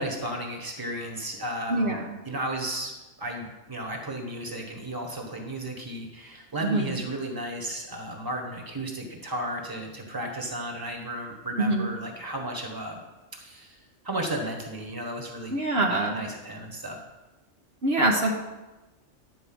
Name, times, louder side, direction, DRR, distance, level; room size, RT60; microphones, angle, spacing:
voice 1, 0.0-2.9 3.2-13.0 13.3-13.8 14.0-15.5 15.9-17.0, right 1 dB, 20° right, 2 dB, 1.5 m, -34 dB
voice 2, 1.7-2.0 6.6-6.9 11.6-11.9 15.5-16.2 17.8-18.3, right 2 dB, 60° right, 0 dB, 1.3 m, -24 dB
11.0 x 4.8 x 7.8 m, 1.1 s
omnidirectional pair, 1.3 m